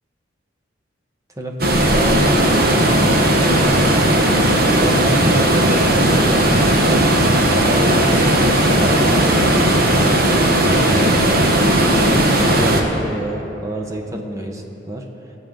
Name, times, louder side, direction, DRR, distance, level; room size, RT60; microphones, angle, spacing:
voice 1, 1.4-4.2 4.7-7.0 7.5-11.5 12.0-15.0, right 1 dB, 15° right, 2 dB, 0.9 m, -28 dB
sound 1, 1.6-12.8, right 1 dB, 55° right, 1.1 m, -16 dB
18.5 x 7.7 x 3.9 m, 2.9 s
head